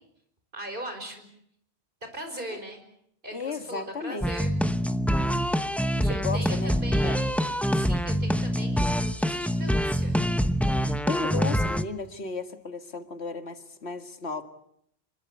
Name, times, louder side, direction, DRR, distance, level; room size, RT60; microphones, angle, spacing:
voice 1, 0.5-1.3 2.0-2.8 3.2-4.6 6.0-10.2, right 1 dB, 55° right, 6 dB, 5.4 m, -39 dB
voice 2, 3.3-4.3 6.1-6.7 7.0-7.2 10.8-14.4, left 4 dB, 85° left, 7 dB, 2.2 m, -34 dB
sound 1, 4.2-11.8, equal, ahead, 0.9 m, -25 dB
26.5 x 23.0 x 8.3 m, 0.72 s
omnidirectional pair, 1.1 m